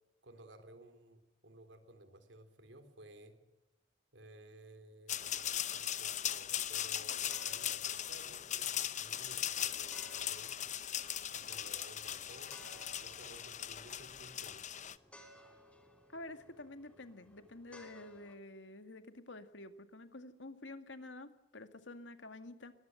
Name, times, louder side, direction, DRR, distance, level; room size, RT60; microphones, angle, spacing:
voice 1, 0.2-3.4 4.1-10.5 11.3-14.6, right 1 dB, 75° right, 9 dB, 3.6 m, -57 dB
sound 1, 5.1-15.0, left 10 dB, 40° left, 0.8 m, -39 dB
sound 2, 7.2-18.4, equal, 5° left, 3.0 m, -60 dB
voice 2, 16.1-22.7, left 2 dB, 85° left, 9 dB, 2.0 m, -49 dB
22.5 x 19.0 x 7.9 m, 0.99 s
head